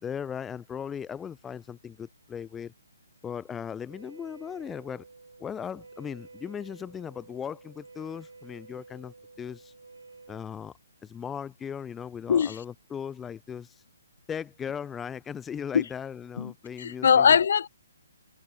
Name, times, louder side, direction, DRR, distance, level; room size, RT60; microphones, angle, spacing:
voice 1, 0.0-2.7 3.2-5.1 5.4-9.7 10.3-10.7 11.0-13.8 14.3-17.4, left 7 dB, 10° left, 0.4 m, -38 dB
Wind instrument woodwind instrument, 3.9-10.5, right 3 dB, 75° right, 3.3 m, -51 dB
voice 2, 16.8-17.7, left 7 dB, 55° left, 0.6 m, -21 dB
figure-of-eight pair, 140°, 0 cm